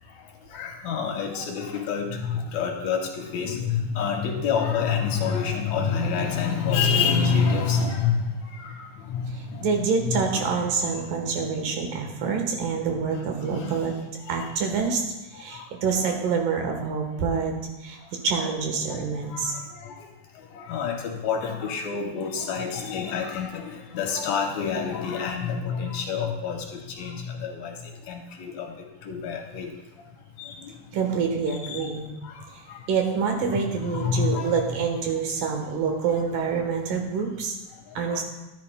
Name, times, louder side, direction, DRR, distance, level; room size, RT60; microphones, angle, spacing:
voice 1, 0.0-12.4 13.1-13.9 14.2-14.6 15.3-15.7 18.0-18.2 18.9-31.0 31.5-32.9 33.5-35.2 35.9-36.2 37.7-38.2, left 6 dB, 70° left, 2 dB, 2.0 m, -29 dB
voice 2, 9.6-13.9 14.3-15.0 15.3-17.6 17.8-18.0 18.2-19.5 30.9-32.1 32.9-37.6 38.0-38.2, right 5 dB, 85° right, 3 dB, 3.0 m, -26 dB
13.5 x 10.5 x 2.2 m, 1.0 s
omnidirectional pair, 3.8 m